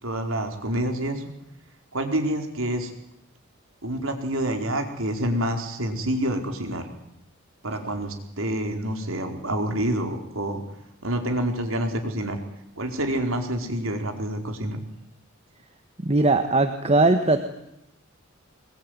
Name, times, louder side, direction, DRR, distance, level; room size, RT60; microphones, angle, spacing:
voice 1, 0.0-1.3 1.9-2.9 3.8-6.9 7.6-10.6 11.0-12.4 12.8-14.8, right 1 dB, 70° right, 4 dB, 4.6 m, -27 dB
voice 2, 16.0-17.4, right 2 dB, 30° right, 8 dB, 1.4 m, -19 dB
24.5 x 21.5 x 9.6 m, 0.84 s
head